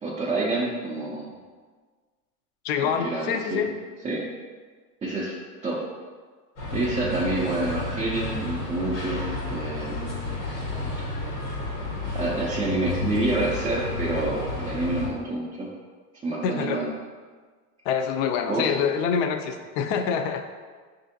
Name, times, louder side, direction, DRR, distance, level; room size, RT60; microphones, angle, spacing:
voice 1, 0.0-1.2 2.8-3.7 4.0-4.2 5.0-5.3 5.6-5.8 6.7-10.2 11.1-11.2 12.1-15.7 16.2-16.9 18.5-18.7, right 2 dB, 15° right, -7 dB, 0.4 m, -28 dB
voice 2, 2.6-3.7 16.4-16.9 17.9-20.5, left 7 dB, 55° left, 7 dB, 0.5 m, -26 dB
sound 1, 6.6-15.1, left 2 dB, 85° left, 1.3 m, -31 dB
5.4 x 2.6 x 2.6 m, 1.5 s
hypercardioid pair, 95°, 47 cm